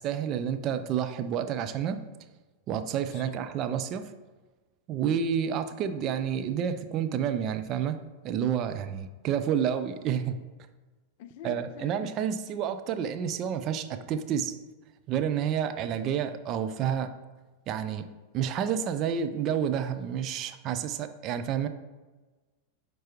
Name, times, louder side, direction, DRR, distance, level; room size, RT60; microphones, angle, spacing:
voice 1, 0.0-2.0 2.7-4.1 4.9-10.4 11.4-14.6 15.1-17.1 17.7-18.1 18.3-21.7, right 8 dB, 35° right, 9 dB, 0.5 m, -29 dB
voice 2, 11.2-12.1, left 8 dB, 50° left, 12 dB, 0.4 m, -44 dB
9.0 x 4.6 x 3.0 m, 1.2 s
figure-of-eight pair, 90°, 0 cm